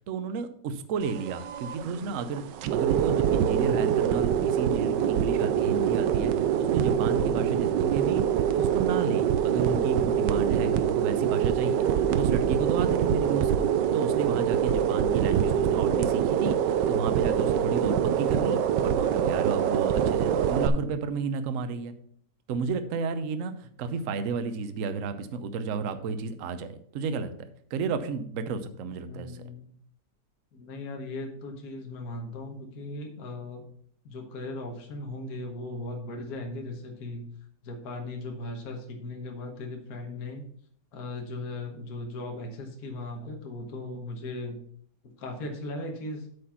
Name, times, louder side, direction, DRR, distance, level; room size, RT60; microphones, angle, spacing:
voice 1, 0.1-13.7 13.9-21.9 22.5-27.3 27.7-29.4, right 5 dB, 60° right, 10 dB, 1.0 m, -32 dB
sound 1, 1.0-20.7, right 9 dB, 90° right, 1.3 m, -25 dB
voice 2, 28.9-29.7 30.5-33.7 34.0-37.3 37.6-40.4 40.9-44.6 45.2-46.3, left 2 dB, 60° left, 3 dB, 1.7 m, -38 dB
8.2 x 5.1 x 5.6 m, 0.62 s
omnidirectional pair, 1.9 m